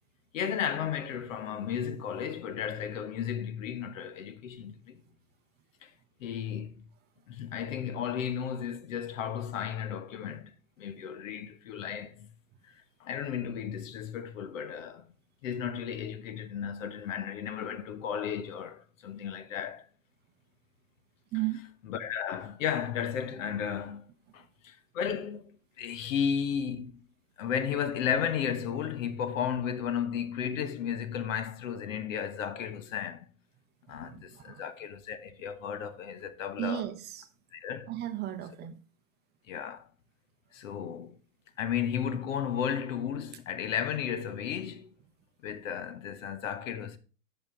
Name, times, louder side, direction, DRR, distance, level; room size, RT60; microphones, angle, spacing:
voice 1, 0.3-5.0 5.8-5.9 6.2-6.9 7.3-12.3 12.7-15.1 15.4-19.9 21.9-24.1 24.3-27.0 27.4-33.3 33.9-36.8 37.5-37.9 39.5-39.9 40.5-41.2 41.6-44.9 45.4-47.0, left 8 dB, 65° left, 1.2 m, -34 dB
voice 2, 21.3-21.7 33.9-34.7 36.6-37.3 37.9-38.8, right 14 dB, 25° right, 0.7 m, -35 dB
8.7 x 6.0 x 3.7 m
hypercardioid pair, 125°, 41 cm